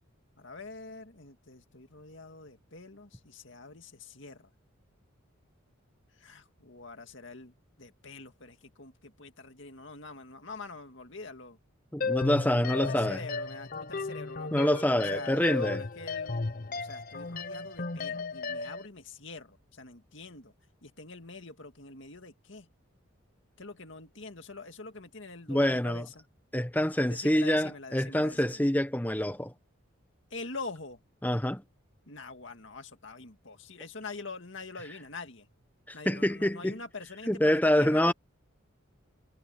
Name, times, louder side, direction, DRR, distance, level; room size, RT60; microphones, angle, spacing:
voice 1, 0.4-4.5 6.2-11.6 12.5-14.5 14.9-20.5 20.8-22.7 23.6-26.2 27.1-28.6 30.3-31.0 32.1-35.5 35.9-38.1, left 3 dB, 60° left, 2.2 m, -45 dB
voice 2, 11.9-13.2 14.5-15.8 25.5-26.1 26.5-29.5 31.2-31.6 35.9-36.8 37.3-38.1, left 1 dB, 10° left, 1.0 m, -26 dB
sound 1, 12.0-18.9, left 3 dB, 40° left, 0.8 m, -34 dB
head